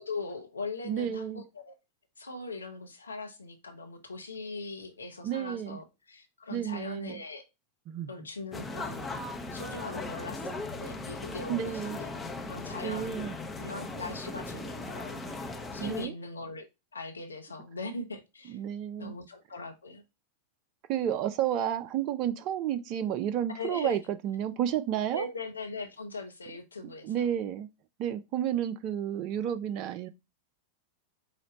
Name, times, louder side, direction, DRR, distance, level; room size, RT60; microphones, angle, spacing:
voice 1, 0.0-1.7 2.2-7.4 8.1-9.3 9.5-12.1 12.5-13.3 13.6-16.7 16.9-18.6 19.0-20.0 23.5-24.0 25.1-27.1, left 3 dB, 75° left, 0.6 m, -40 dB
voice 2, 0.8-1.4 5.2-5.8 6.5-7.2 7.9-8.1 11.5-12.0 12.8-13.3 15.8-16.1 18.5-19.1 20.9-25.3 27.0-27.7 28.0-30.1, right 10 dB, 40° right, 0.4 m, -31 dB
sound 1, 8.5-16.1, left 2 dB, 15° left, 0.6 m, -38 dB
4.9 x 2.1 x 3.9 m
figure-of-eight pair, 90°, 0 cm